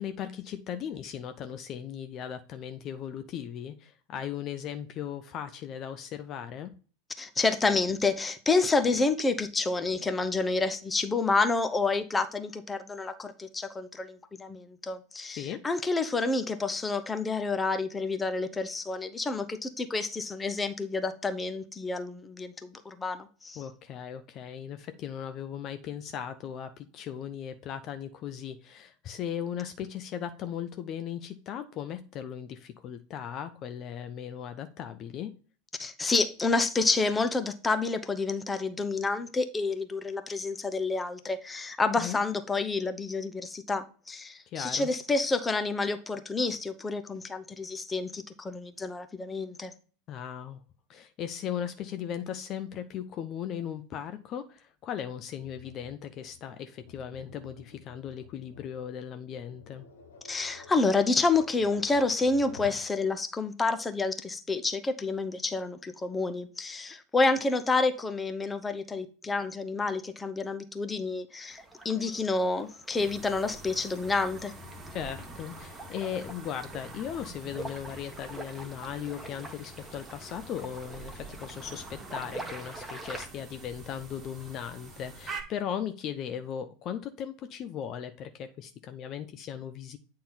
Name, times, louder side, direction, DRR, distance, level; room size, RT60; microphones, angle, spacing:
voice 1, 0.0-6.7 15.4-15.6 23.6-35.3 41.9-42.2 44.5-44.9 50.1-50.6 50.9-59.9 74.9-90.0, left 9 dB, 45° left, 0.6 m, -37 dB
voice 2, 7.2-23.6 35.8-49.7 60.3-74.5, left 3 dB, 15° left, 0.8 m, -29 dB
Tap, 55.4-62.9, left 5 dB, 75° left, 1.2 m, -51 dB
sound 1, 71.5-83.3, right 2 dB, 5° right, 1.3 m, -45 dB
sound 2, 73.0-85.4, right 3 dB, 25° right, 1.5 m, -46 dB
8.6 x 3.7 x 4.2 m
hypercardioid pair, 85°, 0 cm